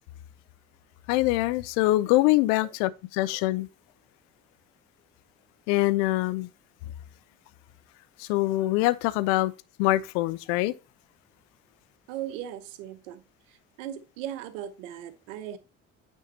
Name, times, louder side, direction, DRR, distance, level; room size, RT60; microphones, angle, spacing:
voice 1, 1.1-3.7 5.7-6.5 8.2-9.5 9.8-10.7, left 17 dB, 65° left, 0.6 m, -24 dB
voice 2, 12.1-13.2 13.8-15.6, right 11 dB, 75° right, 0.9 m, -37 dB
9.1 x 3.6 x 4.1 m
figure-of-eight pair, 50°, 39 cm